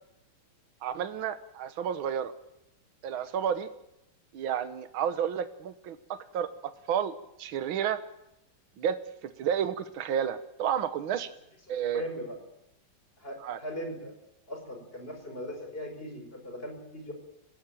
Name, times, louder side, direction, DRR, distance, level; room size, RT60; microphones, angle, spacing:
voice 1, 0.8-2.3 3.0-3.7 4.3-6.0 6.3-6.5 6.9-7.1 7.4-8.0 8.8-9.0 9.4-11.3 11.7-12.1 13.4-13.6, right 8 dB, 75° right, 10 dB, 1.9 m, -30 dB
voice 2, 11.7-12.4 13.2-14.1 14.5-17.1, equal, 25° left, 4 dB, 5.4 m, -39 dB
26.5 x 15.5 x 9.0 m, 0.86 s
omnidirectional pair, 2.3 m